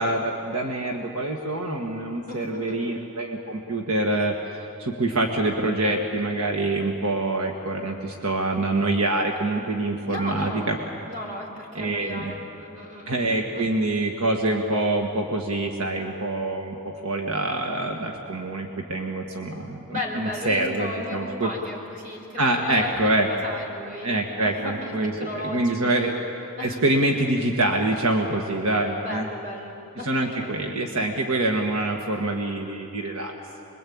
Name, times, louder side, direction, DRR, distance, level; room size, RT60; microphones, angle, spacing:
voice 1, 0.0-10.8 11.7-12.3 13.1-21.5 22.4-23.3 24.0-26.1 26.6-29.3 30.0-33.3, right 2 dB, 75° right, 2 dB, 1.7 m, -25 dB
voice 2, 2.3-2.8 10.1-10.7 11.1-13.3 13.5-13.7 19.9-25.9 26.6-26.8 29.0-30.5, left 1 dB, 35° right, 0 dB, 4.9 m, -35 dB
26.0 x 22.5 x 8.7 m, 2.8 s
head